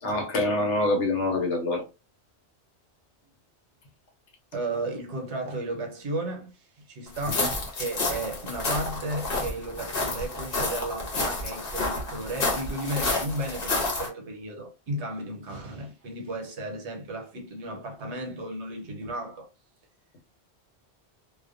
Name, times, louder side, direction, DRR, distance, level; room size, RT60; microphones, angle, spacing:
voice 1, 0.0-1.8, left 2 dB, 85° left, 1.1 m, -25 dB
voice 2, 4.5-6.5 6.9-19.5, right 1 dB, 75° right, 1.0 m, -34 dB
sound 1, 7.1-14.1, left 3 dB, 60° left, 1.0 m, -30 dB
2.4 x 2.2 x 2.4 m
omnidirectional pair, 1.2 m